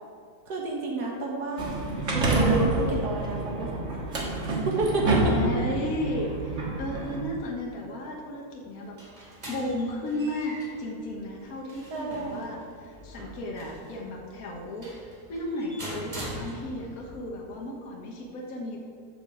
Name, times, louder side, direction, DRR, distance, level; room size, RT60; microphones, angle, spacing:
voice 1, 0.5-1.7 2.3-3.9 4.5-5.3 11.9-12.6, right 2 dB, 90° right, -1 dB, 1.9 m, -31 dB
sound 1, 1.6-7.2, right 2 dB, 50° right, 1.8 m, -27 dB
voice 2, 5.2-9.0 9.5-14.9 15.3-18.8, left 1 dB, 65° left, 0 dB, 1.6 m, -34 dB
sound 2, 8.6-17.0, right 1 dB, 25° right, 2.2 m, -43 dB
14.0 x 6.0 x 4.8 m, 2.3 s
omnidirectional pair, 1.7 m